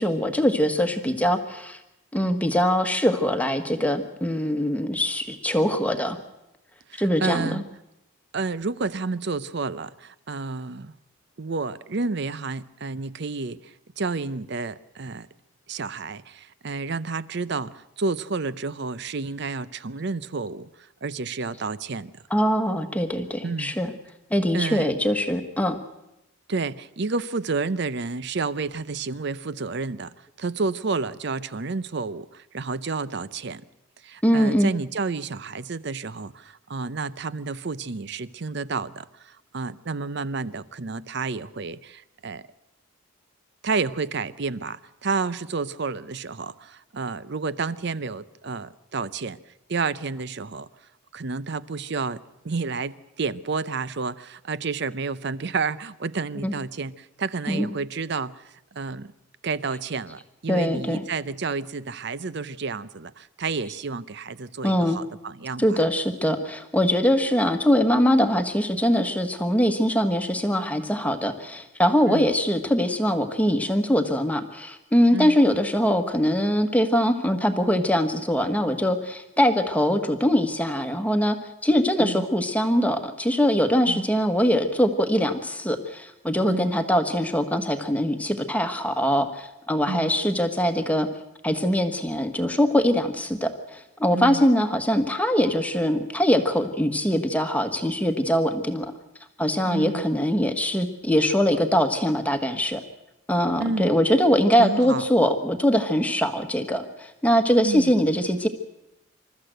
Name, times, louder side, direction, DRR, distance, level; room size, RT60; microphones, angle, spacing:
voice 1, 0.0-1.8 2.1-6.2 7.0-7.6 22.3-23.9 24.3-25.8 34.2-34.7 56.4-56.5 57.5-57.7 60.5-61.0 64.6-65.0 65.6-81.4 81.6-91.1 91.4-98.9 99.4-102.8 103.3-108.5, equal, 5° left, 1.3 m, -22 dB
voice 2, 6.9-7.6 8.3-10.9 11.4-15.3 15.7-20.7 21.0-22.2 23.4-23.8 24.5-24.9 26.5-33.6 34.0-42.5 43.6-49.4 49.7-50.7 51.1-58.4 58.7-59.1 59.4-65.8 72.1-72.3 75.1-75.4 82.0-82.3 83.9-84.0 86.5-86.7 89.9-90.1 94.1-94.4 99.7-100.0 103.6-103.9 104.6-105.0 107.7-107.9, right 4 dB, 55° right, 0.6 m, -30 dB
27.0 x 13.5 x 7.9 m
head